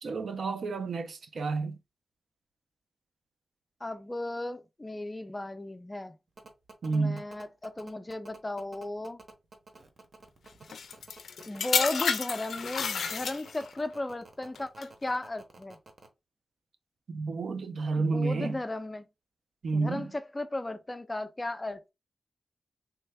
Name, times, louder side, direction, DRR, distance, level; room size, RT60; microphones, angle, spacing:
voice 1, 0.0-1.8 6.8-7.2 17.1-18.6 19.6-20.1, right 3 dB, 70° right, 0.4 m, -30 dB
voice 2, 3.8-6.2 6.9-9.2 11.5-15.8 18.0-19.1 19.7-21.9, left 2 dB, 20° left, 0.3 m, -35 dB
sound 1, 6.4-16.1, right 3 dB, 45° right, 0.8 m, -51 dB
sound 2, 10.7-13.8 14.6-14.8, left 6 dB, 90° left, 0.4 m, -30 dB
3.3 x 2.1 x 3.3 m
wide cardioid pair, 130°, 0 cm